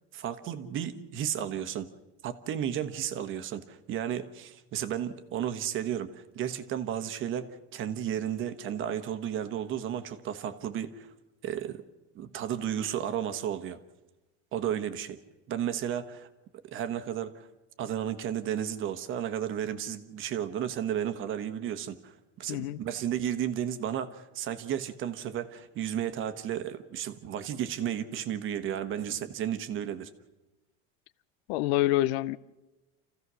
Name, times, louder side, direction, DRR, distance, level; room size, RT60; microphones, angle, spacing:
voice 1, 0.1-1.9 2.2-11.1 11.4-11.8 12.1-13.8 14.5-15.2 15.5-16.3 16.6-17.5 17.8-30.1, right 10 dB, 35° right, 1.2 m, -33 dB
voice 2, 22.5-22.8 31.5-32.4, left 16 dB, 65° left, 0.6 m, -26 dB
28.0 x 15.5 x 6.3 m
supercardioid pair, 150°, 33 cm